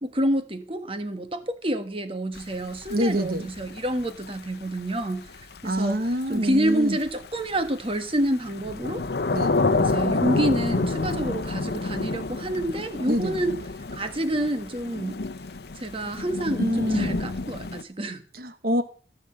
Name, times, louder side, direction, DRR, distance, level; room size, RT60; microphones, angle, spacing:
voice 1, 0.0-5.3 5.6-6.0 6.3-9.0 9.8-13.6 13.9-15.2 15.8-18.2, right 1 dB, 30° right, 1.4 m, -28 dB
Thunder / Rain, 2.3-17.8, left 3 dB, 65° left, 0.8 m, -29 dB
voice 2, 2.9-3.5 5.6-7.0 9.3-9.5 13.0-13.3 16.6-17.2 18.3-18.8, equal, 55° right, 1.4 m, -26 dB
15.5 x 6.6 x 7.7 m
head